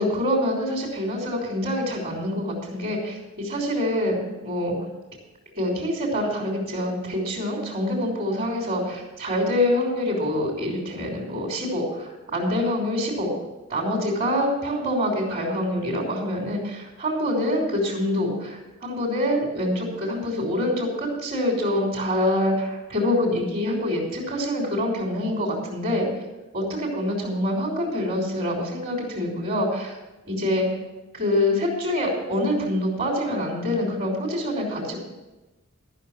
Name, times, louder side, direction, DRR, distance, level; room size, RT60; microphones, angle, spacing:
voice 1, 0.0-4.2 4.4-4.8 5.5-13.3 13.7-26.1 26.5-30.0 30.2-30.7 31.1-35.0, left 1 dB, 40° right, -3 dB, 3.4 m, -25 dB
13.0 x 6.6 x 7.3 m, 1.1 s
head